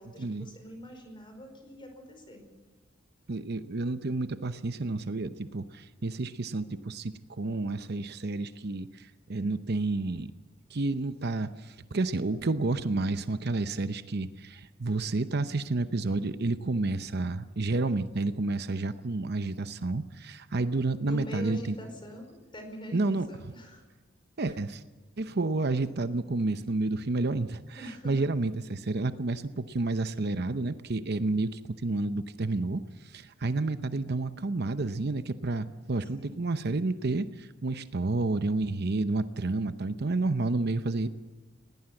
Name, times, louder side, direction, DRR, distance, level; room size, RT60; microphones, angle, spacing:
voice 1, 0.0-2.4 21.1-23.8 24.4-24.6 27.8-28.2 36.1-36.4, equal, 25° left, 5 dB, 5.0 m, -44 dB
voice 2, 3.3-10.3 10.7-21.8 22.9-23.3 24.4-24.8 25.2-41.1, right 2 dB, 55° right, 11 dB, 0.8 m, -30 dB
20.5 x 17.5 x 7.8 m, 1.3 s
head